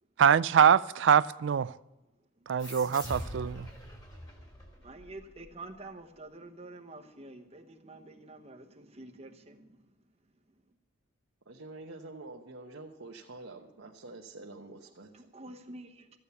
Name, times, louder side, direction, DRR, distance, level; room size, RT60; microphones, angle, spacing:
voice 1, 0.2-1.8 2.5-3.7, right 8 dB, 65° right, 0.3 m, -24 dB
sound 1, 2.6-5.8, equal, 20° left, 2.6 m, -43 dB
voice 2, 4.8-9.9 15.1-16.2, right 2 dB, 30° right, 1.0 m, -48 dB
voice 3, 11.5-15.1, right 2 dB, 85° right, 1.1 m, -47 dB
13.5 x 8.7 x 6.9 m
head